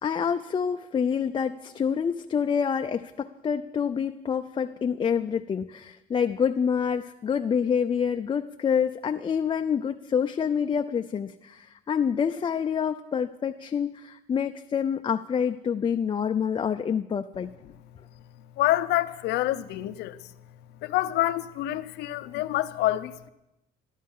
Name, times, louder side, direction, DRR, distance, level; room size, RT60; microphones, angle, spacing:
voice 1, 0.0-17.5, left 7 dB, 30° left, 0.5 m, -27 dB
voice 2, 18.6-20.2 20.8-23.3, left 15 dB, 80° left, 0.7 m, -27 dB
13.0 x 13.0 x 5.5 m
cardioid pair, 110°, 17 cm